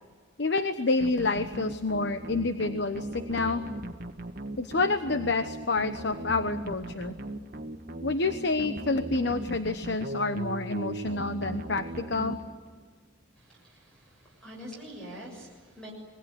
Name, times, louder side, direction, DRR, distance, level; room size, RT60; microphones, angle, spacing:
voice 1, 0.4-3.6 4.6-7.1 8.0-12.4, left 3 dB, 55° left, 10 dB, 1.1 m, -28 dB
sound 1, 1.0-12.9, right 1 dB, 45° right, 1.6 m, -38 dB
voice 2, 13.4-15.9, equal, 5° left, -3 dB, 7.1 m, -45 dB
26.0 x 22.0 x 9.7 m, 1.5 s
head